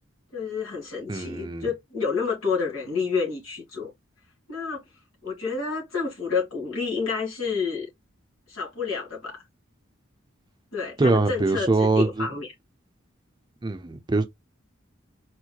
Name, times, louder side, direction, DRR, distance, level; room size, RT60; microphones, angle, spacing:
voice 1, 0.3-3.9 4.5-4.8 5.2-7.9 8.5-9.4 10.7-11.7 12.0-12.5, left 5 dB, 85° left, 2.1 m, -29 dB
voice 2, 1.1-1.7 11.0-12.3 13.6-14.3, right 3 dB, 20° right, 0.5 m, -23 dB
4.4 x 3.0 x 2.2 m
head